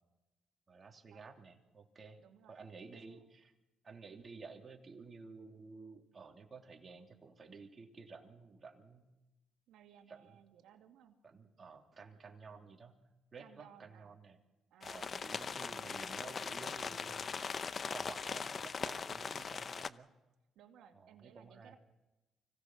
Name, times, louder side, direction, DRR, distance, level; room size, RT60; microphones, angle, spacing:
voice 1, 0.7-2.2 2.5-3.5 3.8-9.1 10.1-10.4 11.2-13.0 13.3-14.4 14.8-17.5 17.9-20.1 20.9-21.8, right 4 dB, 35° right, 2 dB, 3.1 m, -53 dB
voice 2, 2.2-3.2 9.7-11.2 12.5-12.7 13.4-14.2 14.7-16.1 20.6-21.8, right 9 dB, 80° right, 5 dB, 2.2 m, -61 dB
sound 1, 14.8-19.9, left 5 dB, 45° left, 0.8 m, -40 dB
25.5 x 17.0 x 6.3 m, 1.0 s
cardioid pair, 80°, 0 cm